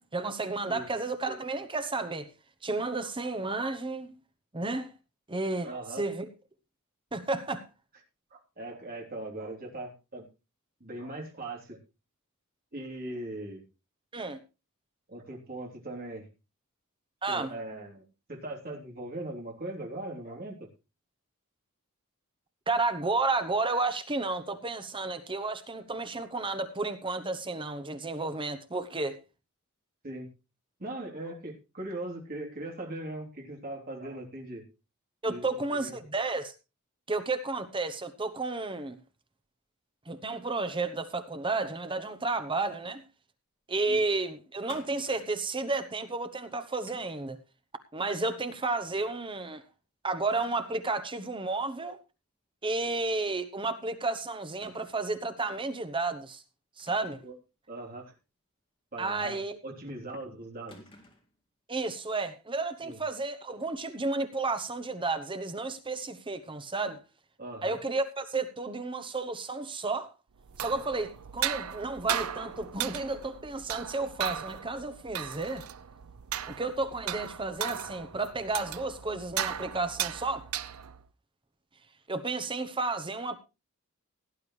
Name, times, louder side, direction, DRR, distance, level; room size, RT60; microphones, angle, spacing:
voice 1, 0.0-2.3 2.6-4.1 4.5-4.9 5.3-5.7 6.0-6.3 7.1-7.6 14.1-14.4 17.2-17.5 22.7-29.2 35.2-36.5 37.1-39.0 40.1-43.0 43.7-47.4 47.9-49.6 50.0-52.0 52.6-56.4 56.8-57.2 59.0-59.6 61.7-67.0 67.6-70.1 70.6-75.6 76.5-80.4 82.1-83.4, right 3 dB, 25° right, 10 dB, 1.0 m, -32 dB
voice 2, 5.6-6.1 8.3-10.3 10.8-11.8 12.7-13.6 15.1-16.3 17.3-20.7 30.0-30.3 30.8-34.7 35.2-36.0 43.9-44.0 57.2-57.4 57.7-58.1 58.9-60.8 62.8-63.0 67.4-67.8, right 1 dB, 45° right, 0 dB, 3.4 m, -40 dB
sound 1, 44.7-45.5 46.9-47.3 49.0-49.3 49.7-49.8 50.3-50.8 51.2-51.3 52.9-53.1 53.4-53.5 54.6-55.2 56.8-57.3 59.2-59.8 60.7-61.3, left 2 dB, 25° left, 2.2 m, -54 dB
sound 2, 70.4-81.1, right 10 dB, 80° right, 0.6 m, -37 dB
17.5 x 10.5 x 3.2 m, 0.29 s
head